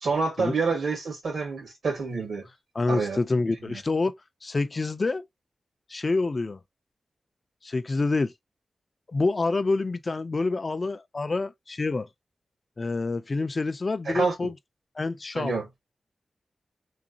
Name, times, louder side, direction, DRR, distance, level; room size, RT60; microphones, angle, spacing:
voice 1, 0.0-2.5 2.9-3.2 3.7-3.8 14.1-14.5 15.3-15.7, right 4 dB, 75° right, 2.2 m, -28 dB
voice 2, 2.7-5.3 5.9-6.6 7.6-8.3 9.1-12.1 12.8-14.6 15.0-15.5, left 3 dB, 30° left, 0.4 m, -27 dB
3.9 x 3.0 x 2.5 m
wide cardioid pair, 175°, 0 cm